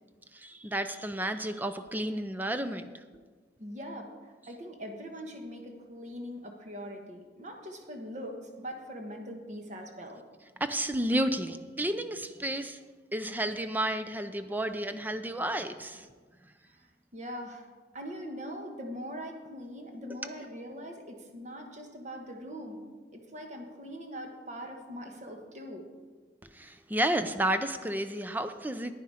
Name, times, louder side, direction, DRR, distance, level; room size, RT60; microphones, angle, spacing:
voice 1, 0.3-2.9 10.6-12.8 13.1-16.1 26.5-28.9, right 1 dB, 10° right, 9 dB, 0.4 m, -31 dB
voice 2, 3.6-10.2 16.7-16.9 17.1-17.7 17.9-22.8 23.1-25.9, equal, 40° right, 3 dB, 1.4 m, -42 dB
10.0 x 9.7 x 4.9 m, 1.5 s
head